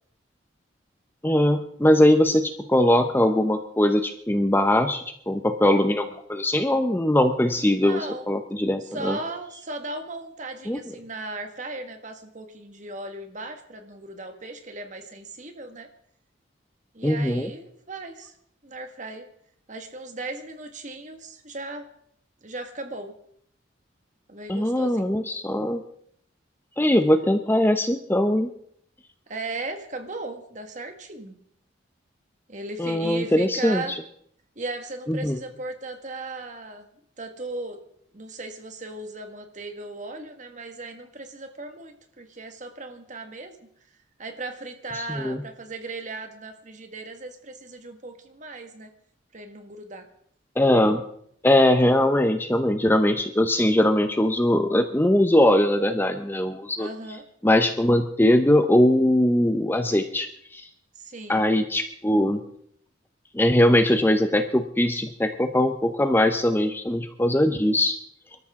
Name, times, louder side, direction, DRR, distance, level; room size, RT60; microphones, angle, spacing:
voice 1, 1.2-8.0 8.3-9.2 10.7-10.8 17.0-17.5 24.5-25.8 26.8-28.5 32.8-33.8 35.1-35.4 45.0-45.4 50.6-51.0 51.4-56.9 57.4-60.7 61.3-62.4 63.3-68.0, left 1 dB, 10° left, 8 dB, 0.6 m, -21 dB
voice 2, 7.6-8.3 8.8-15.9 16.9-18.3 18.6-19.3 19.7-21.9 22.4-23.1 24.3-25.1 29.3-31.4 32.5-34.0 34.5-36.9 37.2-37.8 38.1-43.7 44.2-48.9 49.3-50.1 56.8-57.2 60.9-61.5, right 2 dB, 40° right, 6 dB, 1.7 m, -37 dB
24.5 x 13.0 x 3.7 m, 0.67 s
head